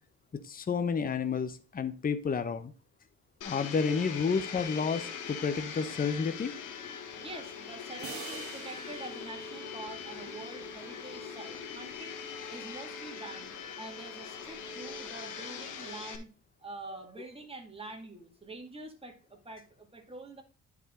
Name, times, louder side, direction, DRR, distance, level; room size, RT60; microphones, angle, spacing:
voice 1, 0.4-2.7 3.4-6.5, left 5 dB, 30° left, 10 dB, 0.8 m, -30 dB
Domestic sounds home sounds, 3.4-16.2, left 6 dB, 85° left, 1.4 m, -42 dB
voice 2, 7.2-12.2 12.5-16.3 16.6-20.4, right 2 dB, 20° right, 3 dB, 2.2 m, -46 dB
sound 1, 8.0-10.7, right 6 dB, 50° right, 1.6 m, -47 dB
9.9 x 4.8 x 3.7 m, 0.34 s
cardioid pair, 90°, 30 cm